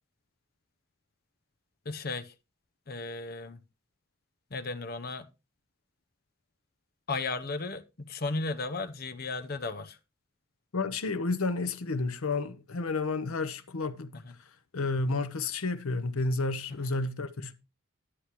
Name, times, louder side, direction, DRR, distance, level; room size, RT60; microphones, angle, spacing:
voice 1, 1.9-2.3 2.9-3.6 4.5-5.3 7.1-10.0 14.1-14.3, left 3 dB, 45° left, 0.7 m, -35 dB
voice 2, 10.7-14.2 14.7-17.5, left 3 dB, 85° left, 0.8 m, -31 dB
9.9 x 9.8 x 3.0 m
head